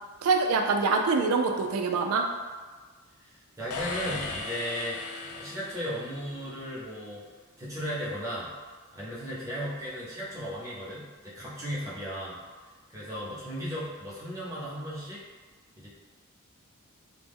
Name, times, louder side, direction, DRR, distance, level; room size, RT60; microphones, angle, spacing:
voice 1, 0.2-2.3, right 4 dB, 70° right, 4 dB, 0.3 m, -25 dB
voice 2, 3.2-7.2 7.6-8.5 8.9-12.4 12.9-15.2 15.8-15.9, equal, 15° right, -8 dB, 0.7 m, -36 dB
sound 1, 3.7-6.5, left 3 dB, 75° left, 0.3 m, -37 dB
2.2 x 2.1 x 3.3 m, 1.4 s
head